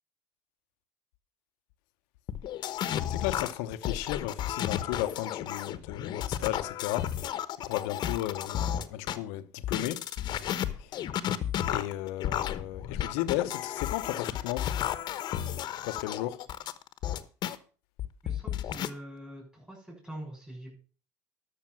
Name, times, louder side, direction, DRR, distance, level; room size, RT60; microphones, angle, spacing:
sound 1, 2.3-9.2 9.6-17.6 18.0-18.9, left 11 dB, 60° left, 1.1 m, -33 dB
voice 1, 3.1-7.1 7.6-10.0 11.7-14.7 15.8-16.4, left 14 dB, 85° left, 0.8 m, -34 dB
voice 2, 18.2-20.7, equal, 10° right, 6.5 m, -44 dB
12.5 x 6.7 x 6.1 m
supercardioid pair, 80°, 8 cm